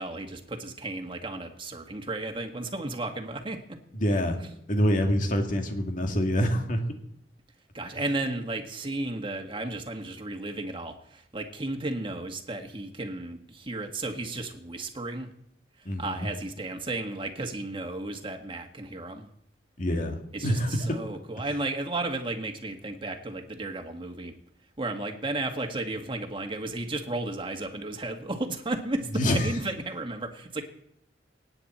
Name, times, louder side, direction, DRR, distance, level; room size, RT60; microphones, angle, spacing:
voice 1, 0.0-3.6 7.7-15.3 16.0-19.3 20.3-24.3 24.8-30.6, right 2 dB, 30° right, 4 dB, 1.7 m, -34 dB
voice 2, 3.9-6.8 15.9-16.3 19.8-21.0 29.1-29.5, equal, 50° left, 4 dB, 2.1 m, -26 dB
24.0 x 9.8 x 4.4 m, 0.76 s
head